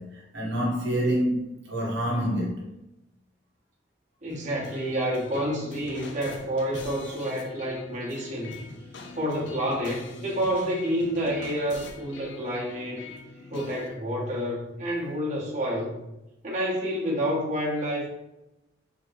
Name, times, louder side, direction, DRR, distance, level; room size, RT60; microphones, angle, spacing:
voice 1, 0.0-2.6, equal, 80° right, 1.1 m, -27 dB
voice 2, 4.2-8.6 9.1-13.1 13.5-16.0 16.4-18.1, equal, 40° right, 1.1 m, -29 dB
sound 1, 4.3-13.9, left 3 dB, 75° left, 0.5 m, -43 dB
3.7 x 2.9 x 3.1 m
head